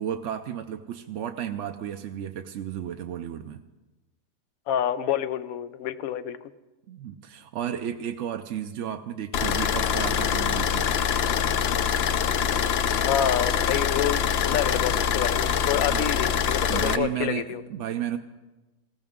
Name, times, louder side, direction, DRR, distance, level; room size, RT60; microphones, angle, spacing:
voice 1, 0.0-3.6 6.9-10.9 15.7-16.1 16.7-18.2, right 10 dB, 65° right, 6 dB, 0.9 m, -33 dB
voice 2, 4.7-6.4 13.0-17.6, left 10 dB, 85° left, 13 dB, 1.1 m, -28 dB
sound 1, 9.3-17.0, left 8 dB, 60° left, 0.7 m, -24 dB
20.0 x 16.0 x 3.7 m, 1.1 s
omnidirectional pair, 1.4 m